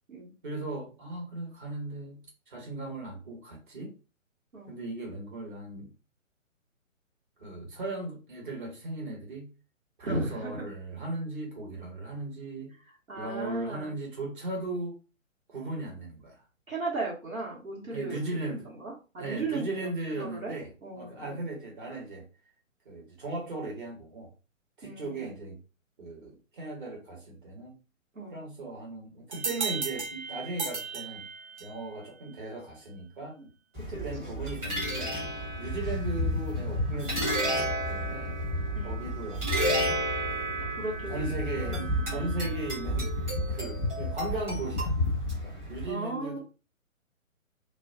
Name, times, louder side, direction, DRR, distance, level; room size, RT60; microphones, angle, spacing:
voice 1, 0.4-3.9 4.7-5.9 7.4-9.5 10.0-12.7 13.2-15.0 15.5-16.4 17.9-18.7 19.2-22.2 22.8-24.3 24.8-25.6 26.0-27.7 28.3-31.2 31.6-33.4 33.8-35.2 35.6-38.4 38.8-40.6 41.1-41.8 42.1-43.1 43.5-44.9 45.4-46.4, right 2 dB, 40° right, 1.1 m, -37 dB
voice 2, 10.0-10.6 13.1-13.9 16.7-19.9 20.2-20.5 20.8-21.4 24.8-25.3 28.1-28.4 33.4-33.5 33.9-34.3 38.7-39.0 40.7-42.6 45.9-46.4, right 2 dB, 75° right, 1.1 m, -37 dB
sound 1, 29.3-31.9, right 4 dB, 55° right, 0.6 m, -35 dB
sound 2, 33.7-45.8, equal, 10° right, 1.0 m, -31 dB
2.4 x 2.1 x 2.5 m
figure-of-eight pair, 135°, 41 cm